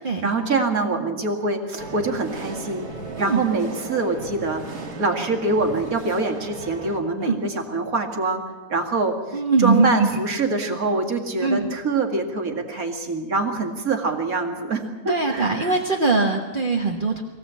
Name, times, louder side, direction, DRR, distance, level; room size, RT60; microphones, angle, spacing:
voice 1, 0.2-2.9 3.2-4.6 5.0-8.4 8.7-15.7, right 3 dB, 65° right, 2 dB, 2.7 m, -24 dB
sound 1, 1.8-7.0, right 3 dB, 80° right, 2.8 m, -36 dB
voice 2, 9.3-10.2 11.4-11.7 15.1-17.2, right 3 dB, 35° right, 1 dB, 1.5 m, -21 dB
23.5 x 16.5 x 8.3 m, 1.2 s
omnidirectional pair, 1.7 m